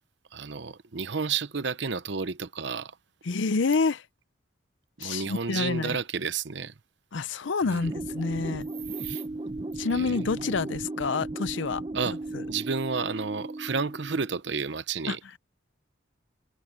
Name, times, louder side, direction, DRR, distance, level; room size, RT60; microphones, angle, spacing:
voice 1, 0.3-2.9 5.0-6.7 7.6-7.9 9.0-9.2 9.9-10.4 11.9-12.2 12.5-15.2, right 5 dB, 65° right, 0.8 m, -31 dB
voice 2, 3.2-4.0 5.0-6.0 7.1-8.6 9.8-12.4 15.1-15.2, left 4 dB, 75° left, 0.6 m, -28 dB
sound 1, 7.8-14.4, right 2 dB, 25° right, 0.7 m, -36 dB
head